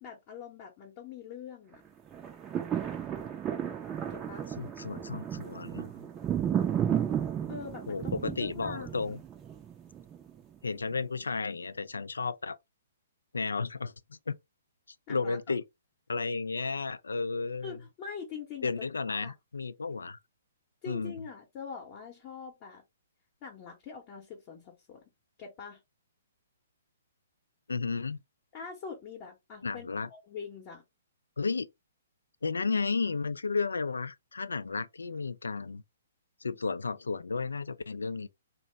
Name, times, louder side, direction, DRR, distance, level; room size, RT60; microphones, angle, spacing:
voice 1, 0.0-1.8 4.1-4.5 7.5-9.1 15.1-15.4 17.6-19.3 20.8-22.8 23.4-25.0 25.4-25.8 28.5-30.8, left 6 dB, 30° left, 0.8 m, -44 dB
sound 1, 2.1-10.4 10.9-11.0, right 9 dB, 20° right, 0.5 m, -33 dB
voice 2, 4.6-5.9 7.9-9.2 10.6-12.6 13.3-14.4 15.1-15.6 16.1-17.8 18.6-20.2 20.9-21.2 27.7-28.2 29.6-30.1 31.4-31.7 32.4-35.8 36.4-38.3, left 4 dB, 70° left, 0.3 m, -33 dB
2.8 x 2.0 x 3.2 m
figure-of-eight pair, 120°, 0 cm